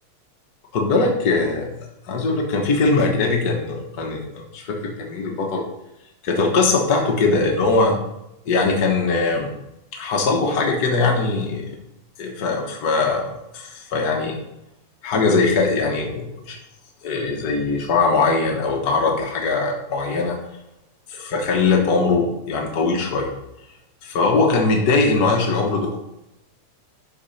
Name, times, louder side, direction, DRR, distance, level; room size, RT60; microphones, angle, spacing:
voice 1, 0.7-1.7 2.1-5.6 6.2-8.0 8.5-9.5 9.9-11.8 12.2-13.2 13.5-14.4 15.0-16.6 17.0-20.4 21.1-23.3 24.0-26.0, left 3 dB, 65° left, 1 dB, 0.9 m, -21 dB
11.5 x 4.0 x 5.6 m, 0.90 s
omnidirectional pair, 3.5 m